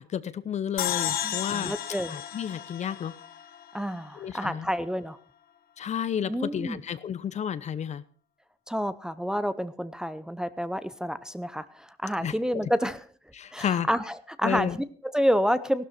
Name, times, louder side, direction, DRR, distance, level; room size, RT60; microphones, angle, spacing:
voice 1, 0.0-1.7 2.1-3.2 4.2-4.7 5.8-8.0 12.2-12.6 13.3-13.9 14.4-14.8, left 8 dB, 40° left, 16 dB, 0.8 m, -31 dB
sound 1, 0.8-4.1, left 11 dB, 60° left, 1.1 m, -33 dB
voice 2, 1.2-2.2 3.7-5.2 6.3-6.8 8.7-13.0 13.5-15.9, equal, 5° right, 12 dB, 0.7 m, -29 dB
15.5 x 12.0 x 4.4 m, 0.42 s
cardioid pair, 110°, 17 cm